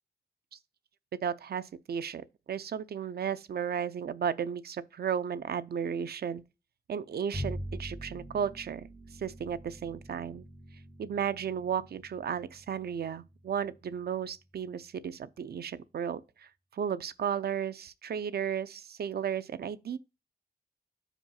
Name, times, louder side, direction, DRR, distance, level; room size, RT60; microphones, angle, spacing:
voice 1, 1.2-6.4 6.9-8.9 9.2-10.5 11.0-20.0, right 8 dB, 85° right, 0.6 m, -34 dB
Bowed string instrument, 7.3-13.8, equal, 15° right, 1.7 m, -44 dB
5.4 x 5.1 x 5.7 m
wide cardioid pair, 135°, 16 cm